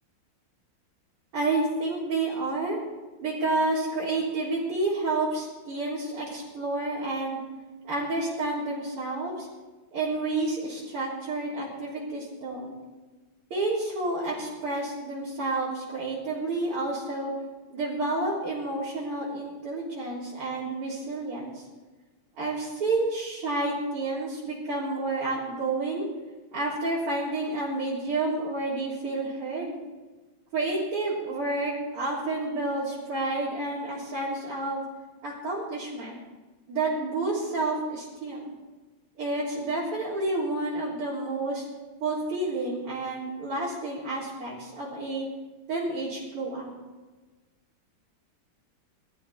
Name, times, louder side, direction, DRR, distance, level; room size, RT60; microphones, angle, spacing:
voice 1, 1.3-2.8 3.2-7.4 7.8-9.5 9.9-12.7 13.5-17.3 17.7-21.6 22.4-26.1 26.5-29.7 30.5-34.8 35.2-36.2 36.7-38.5 39.2-41.7 42.0-45.3 45.7-46.7, right 2 dB, 80° right, -8 dB, 4.7 m, -30 dB
21.5 x 13.5 x 4.3 m, 1.3 s
omnidirectional pair, 2.4 m